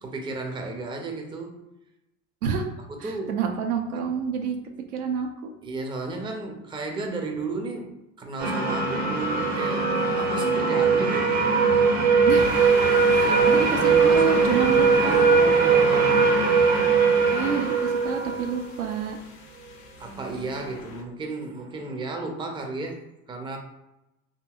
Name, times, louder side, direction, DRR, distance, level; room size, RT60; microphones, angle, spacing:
voice 1, 0.0-1.6 2.9-3.4 5.6-7.9 8.2-11.6 12.9-16.4 20.0-23.6, right 3 dB, 10° right, 2 dB, 0.4 m, -33 dB
voice 2, 3.0-4.6 4.9-5.3 12.2-12.7 13.1-15.4 17.3-19.2, right 6 dB, 85° right, 4 dB, 0.6 m, -28 dB
sound 1, 8.4-19.0, right 5 dB, 70° right, 0.9 m, -20 dB
sound 2, 12.4-21.0, left 4 dB, 65° left, 0.7 m, -37 dB
2.9 x 2.7 x 2.3 m, 0.92 s
hypercardioid pair, 75°, 44 cm